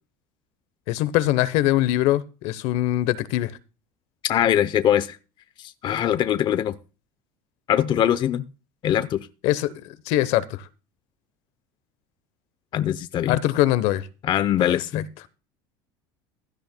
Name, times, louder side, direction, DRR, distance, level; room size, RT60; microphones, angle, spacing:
voice 1, 0.9-3.5 9.4-9.7 10.1-10.6 13.3-14.0 14.6-14.8, left 15 dB, 65° left, 0.9 m, -22 dB
voice 2, 4.2-5.2 5.6-6.8 7.7-8.4 8.8-9.3 12.7-13.4 14.2-15.1, left 10 dB, 40° left, 0.6 m, -22 dB
16.0 x 12.0 x 2.2 m
supercardioid pair, 105°, 12 cm